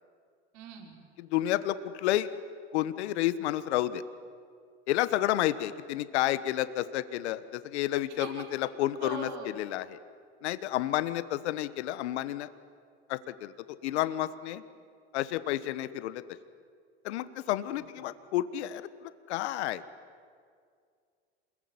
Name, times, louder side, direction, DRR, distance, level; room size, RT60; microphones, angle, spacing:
voice 1, 0.5-1.0 8.2-8.4 9.0-9.6 17.7-17.8, right 5 dB, 60° right, 2 dB, 5.4 m, -42 dB
voice 2, 1.2-2.3 2.7-4.0 4.9-9.3 9.6-10.0 10.4-12.5 13.1-14.6 15.1-16.2 17.0-19.8, left 14 dB, 80° left, 13 dB, 1.3 m, -30 dB
27.5 x 21.5 x 9.7 m, 2.2 s
hypercardioid pair, 90°, 33 cm